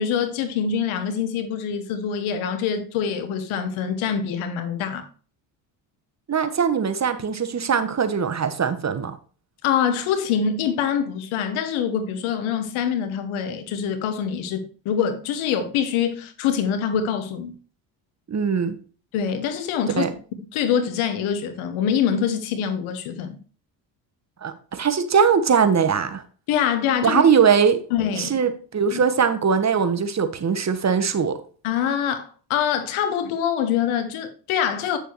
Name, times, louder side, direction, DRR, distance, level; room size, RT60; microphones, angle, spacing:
voice 1, 0.0-5.1 9.6-17.6 19.1-20.1 20.5-23.4 26.5-27.2 27.9-28.3 28.9-29.0 31.6-35.0, left 8 dB, 70° left, 1.1 m, -24 dB
voice 2, 6.3-9.2 18.3-18.8 20.0-20.1 24.4-26.2 27.0-27.8 28.2-31.4, right 6 dB, 35° right, 1.2 m, -21 dB
8.9 x 6.7 x 3.2 m
hypercardioid pair, 60°, 50 cm